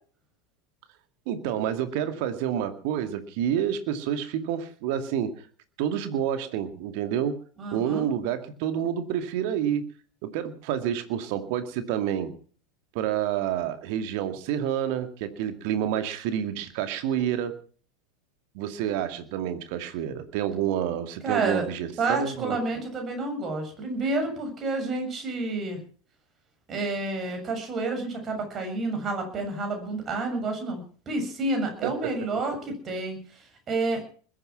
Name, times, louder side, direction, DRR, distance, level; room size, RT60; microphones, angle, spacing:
voice 1, 1.3-5.3 5.8-7.4 7.7-9.8 10.2-12.3 12.9-17.5 18.5-22.6 31.8-32.1, right 10 dB, 50° right, 9 dB, 2.3 m, -28 dB
voice 2, 7.6-8.1 21.2-21.7 22.0-25.8 26.7-34.0, right 2 dB, 30° right, 4 dB, 7.4 m, -29 dB
21.0 x 10.0 x 6.0 m, 0.43 s
figure-of-eight pair, 85°, 0 cm